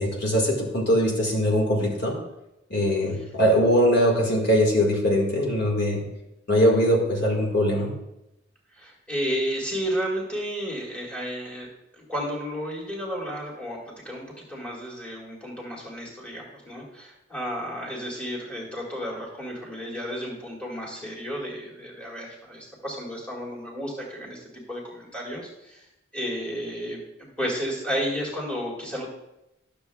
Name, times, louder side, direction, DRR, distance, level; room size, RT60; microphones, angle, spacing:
voice 1, 0.0-2.2 2.7-6.0 6.5-7.9, equal, 60° left, -2 dB, 1.7 m, -21 dB
voice 2, 8.7-11.7 12.0-25.9 26.1-29.1, equal, 5° left, -5 dB, 1.8 m, -32 dB
12.5 x 6.8 x 2.3 m, 0.87 s
head